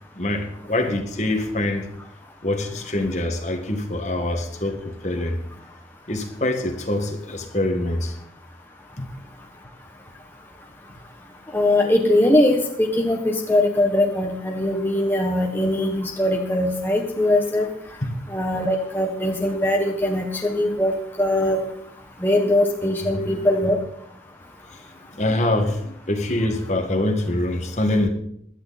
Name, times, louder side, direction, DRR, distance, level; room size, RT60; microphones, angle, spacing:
voice 1, 0.1-1.9 2.4-5.4 6.1-8.2 9.0-9.1 23.1-23.5 24.7-24.8 25.2-28.1, left 1 dB, 40° left, 4 dB, 1.8 m, -24 dB
voice 2, 11.5-17.7 18.3-21.6 22.2-23.8, left 1 dB, 10° left, 1 dB, 1.2 m, -21 dB
16.5 x 11.5 x 4.2 m, 0.71 s
head